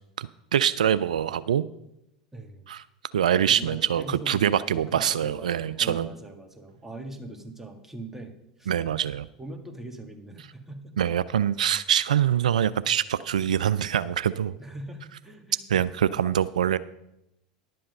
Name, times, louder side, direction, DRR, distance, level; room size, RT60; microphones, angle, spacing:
voice 1, 0.2-1.6 2.7-2.8 3.1-6.1 8.7-9.3 11.0-14.6 15.7-16.8, right 9 dB, 80° right, 16 dB, 0.3 m, -24 dB
voice 2, 2.3-2.7 3.5-8.3 8.6-8.7 9.4-11.0 14.6-15.9, right 2 dB, 10° right, 5 dB, 1.7 m, -41 dB
11.0 x 7.7 x 5.3 m, 0.84 s
hypercardioid pair, 85°, 4 cm